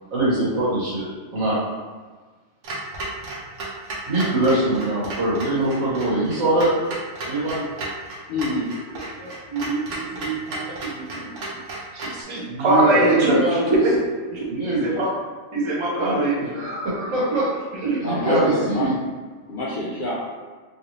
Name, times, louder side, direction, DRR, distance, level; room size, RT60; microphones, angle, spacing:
voice 1, 0.1-1.6 4.1-6.7 7.3-7.6 12.4-13.8 14.5-14.9 15.9-17.5 18.0-18.9, right 2 dB, 90° right, -7 dB, 1.6 m, -23 dB
Clock, 2.6-12.2, right 2 dB, 70° right, 1.1 m, -34 dB
voice 2, 8.3-8.7 18.0-18.9 19.5-20.2, left 1 dB, 60° left, -6 dB, 0.5 m, -25 dB
voice 3, 8.9-11.4 11.9-15.1 15.5-16.7 17.0-17.5 17.7-18.0, right 2 dB, 35° right, -3 dB, 0.5 m, -24 dB
3.2 x 2.7 x 3.0 m, 1.4 s
omnidirectional pair, 1.4 m